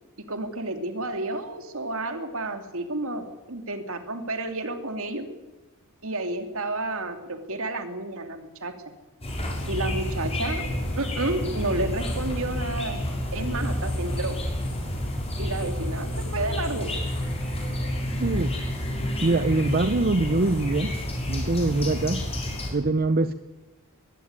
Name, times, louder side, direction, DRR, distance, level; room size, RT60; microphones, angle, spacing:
voice 1, 0.3-5.3 6.0-8.7 9.7-10.7 11.0-13.1 13.3-14.4 15.4-16.9, right 2 dB, 65° right, 7 dB, 2.7 m, -31 dB
sound 1, 9.2-22.7, left 1 dB, 30° left, 6.5 m, -29 dB
voice 2, 18.2-18.5 19.2-21.0 21.3-22.3 22.7-23.3, right 2 dB, 45° right, 11 dB, 0.8 m, -23 dB
22.0 x 15.0 x 9.7 m, 1.1 s
head